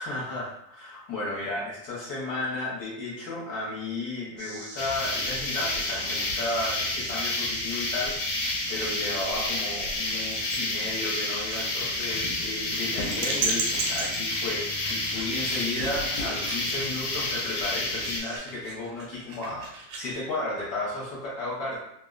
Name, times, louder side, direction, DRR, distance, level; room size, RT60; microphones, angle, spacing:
voice 1, 0.0-19.7 20.0-21.8, left 2 dB, 60° left, -6 dB, 1.3 m, -33 dB
sound 1, 4.4-18.4, right 1 dB, 45° right, 0.5 m, -43 dB
sound 2, 4.8-18.2, left 2 dB, 75° left, 1.3 m, -30 dB
sound 3, 7.5-20.2, right 3 dB, 90° right, 1.4 m, -37 dB
3.4 x 2.0 x 2.4 m, 0.75 s
omnidirectional pair, 2.1 m